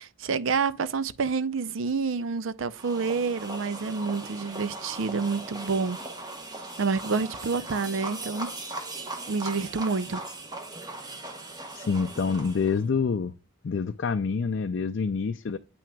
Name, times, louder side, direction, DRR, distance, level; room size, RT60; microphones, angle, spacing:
voice 1, 0.0-6.0 6.8-8.5 9.3-10.2, right 4 dB, 75° right, 0.5 m, -28 dB
sound 1, 2.7-12.8, right 2 dB, 20° right, 0.9 m, -39 dB
voice 2, 11.7-13.3 13.6-15.6, left 5 dB, 60° left, 0.4 m, -27 dB
8.7 x 5.9 x 2.3 m
head